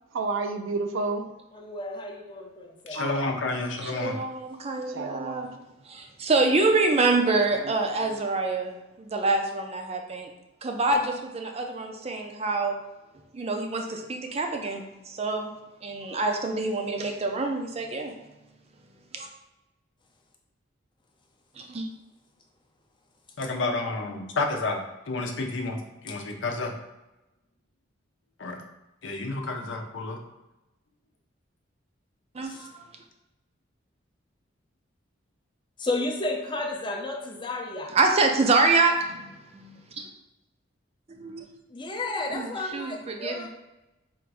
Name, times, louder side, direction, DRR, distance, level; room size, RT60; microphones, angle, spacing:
voice 1, 0.1-1.3 2.9-3.3 4.9-5.6, right 3 dB, 85° right, 7 dB, 0.4 m, -31 dB
voice 2, 1.5-3.0 32.4-32.7 35.8-37.9 41.7-43.5, left 2 dB, 25° left, 1 dB, 0.6 m, -32 dB
voice 3, 2.9-4.2 23.4-26.7 28.4-28.6 29.0-30.2, left 3 dB, 70° left, 2 dB, 0.7 m, -30 dB
voice 4, 4.0-5.5 5.9-10.3 10.6-12.8 13.3-15.5 15.8-18.1 19.1-19.3 21.6-21.9 32.3-32.9 37.9-40.1 41.1-41.5 42.3-43.5, right 3 dB, 30° right, 4 dB, 0.5 m, -26 dB
3.6 x 2.6 x 4.6 m, 0.99 s
head